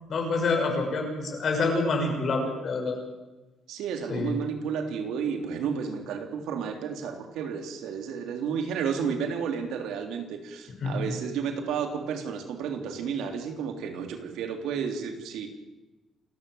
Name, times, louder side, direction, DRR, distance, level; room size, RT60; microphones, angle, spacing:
voice 1, 0.1-3.0 4.1-4.3 10.8-11.0, left 3 dB, 50° left, 2 dB, 6.4 m, -27 dB
voice 2, 3.7-15.5, right 6 dB, 90° right, 5 dB, 3.5 m, -32 dB
28.0 x 13.5 x 8.1 m, 1.1 s
cardioid pair, 130°, 0 cm